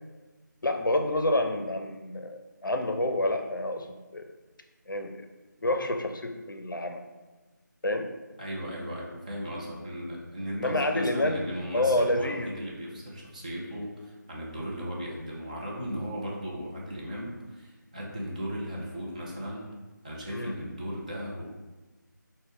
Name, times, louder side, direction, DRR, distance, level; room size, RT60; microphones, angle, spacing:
voice 1, 0.6-3.9 4.1-4.3 4.9-5.1 5.6-7.0 7.8-8.1 10.5-11.5 11.7-12.5 20.3-20.5, left 1 dB, 85° left, 6 dB, 0.4 m, -28 dB
voice 2, 8.4-19.7 20.0-21.4, equal, 20° right, -4 dB, 0.5 m, -36 dB
4.0 x 2.1 x 3.5 m, 1.2 s
figure-of-eight pair, 165°, 11 cm